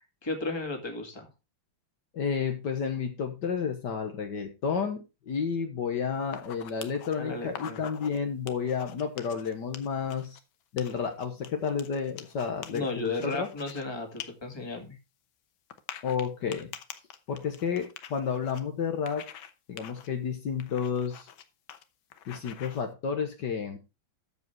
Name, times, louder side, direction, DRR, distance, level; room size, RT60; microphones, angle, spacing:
voice 1, 0.2-1.3 7.2-7.8 12.7-15.0, left 3 dB, 15° left, 3 dB, 2.0 m, -34 dB
voice 2, 2.1-10.4 10.7-13.5 16.0-16.7 17.3-19.2 19.7-21.3 22.3-23.8, left 6 dB, 60° left, 5 dB, 1.8 m, -31 dB
sound 1, 6.2-7.1 7.5-8.2 8.5-10.4 10.8-13.8 14.2-14.3 14.6-14.7 15.7-18.6 19.1-19.5 19.8-20.1 20.6-21.4 21.7-21.8 22.1-22.8, left 9 dB, 85° left, 1.8 m, -45 dB
13.5 x 5.1 x 4.6 m, 0.28 s
omnidirectional pair, 2.1 m